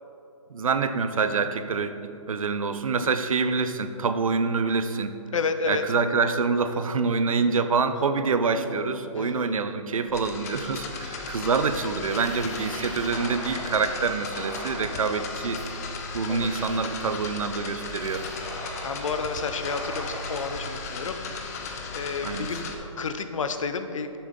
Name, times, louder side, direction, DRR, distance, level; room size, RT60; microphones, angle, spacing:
voice 1, 0.5-2.0 2.3-5.1 5.7-15.6 16.1-18.2 22.2-22.5, right 4 dB, 85° right, 10 dB, 0.6 m, -26 dB
voice 2, 5.3-5.9 9.2-9.6 16.3-16.7 18.8-21.6 21.9-24.2, left 5 dB, 70° left, 9 dB, 0.7 m, -31 dB
sound 1, 10.1-22.8, left 4 dB, 30° left, 0.7 m, -36 dB
sound 2, 11.4-21.7, right 1 dB, ahead, 1.2 m, -41 dB
9.3 x 7.0 x 3.7 m, 3.0 s
hypercardioid pair, 160°, 17 cm